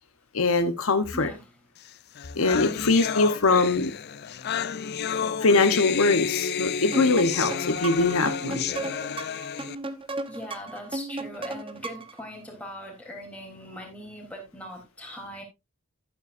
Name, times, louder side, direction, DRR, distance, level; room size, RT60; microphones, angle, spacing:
voice 1, 0.3-1.3 2.4-3.9 5.2-8.7, left 3 dB, 75° left, 1.0 m, -22 dB
voice 2, 1.1-1.5 2.7-2.9 10.3-15.4, equal, 5° left, 3.4 m, -40 dB
sound 1, 1.9-2.0 2.1-9.7, left 7 dB, 50° left, 0.5 m, -31 dB
sound 2, 6.9-12.2, right 2 dB, 25° right, 0.9 m, -35 dB
11.0 x 9.3 x 2.6 m
head